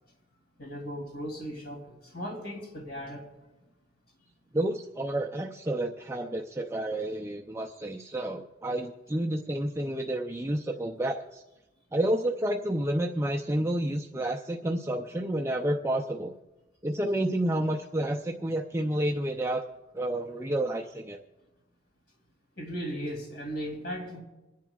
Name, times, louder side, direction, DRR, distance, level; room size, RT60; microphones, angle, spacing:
voice 1, 0.6-3.3 22.6-24.2, equal, 60° left, 0 dB, 2.9 m, -37 dB
voice 2, 4.5-11.4 11.9-16.3 16.8-19.6 19.9-21.2, right 1 dB, 15° right, 1 dB, 0.5 m, -30 dB
26.5 x 10.5 x 2.4 m, 1.0 s
head